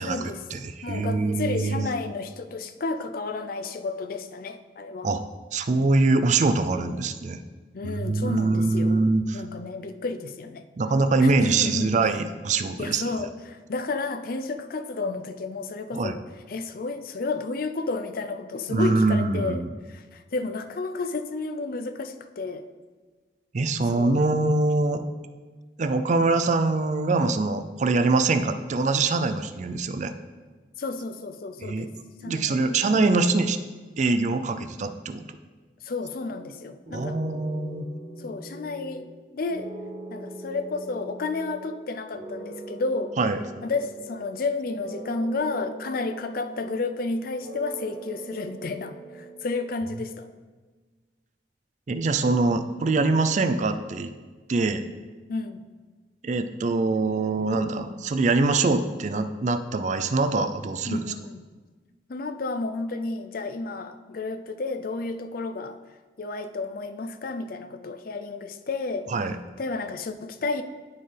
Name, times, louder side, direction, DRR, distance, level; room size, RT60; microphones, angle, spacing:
voice 1, 0.0-0.4 0.8-5.1 7.7-9.0 9.3-10.6 11.2-11.9 12.8-16.2 16.5-22.7 23.9-24.3 30.8-31.9 32.2-33.1 35.8-37.2 38.2-39.1 39.3-39.7 40.1-43.1 43.6-50.3 55.3-55.6 57.4-57.5 60.8-61.4 62.1-65.8 66.2-69.1 69.6-70.6, left 3 dB, 55° left, 9 dB, 0.5 m, -31 dB
voice 2, 0.5-1.8 5.0-5.2 5.5-7.4 7.8-9.4 10.8-13.0 15.9-16.1 18.7-19.7 23.5-25.0 25.8-30.1 31.6-31.9 32.2-33.6 34.0-35.4 36.9-37.9 43.2-43.4 51.9-54.1 54.5-54.8 56.2-61.1 69.1-69.4, right 3 dB, 45° right, 9 dB, 0.4 m, -24 dB
sound 1, 36.3-36.6 36.9-39.2 39.5-41.8 42.1-44.5 44.8-47.1 47.4-49.7, right 2 dB, 65° right, 1.9 m, -41 dB
12.5 x 4.4 x 3.3 m, 1.4 s
head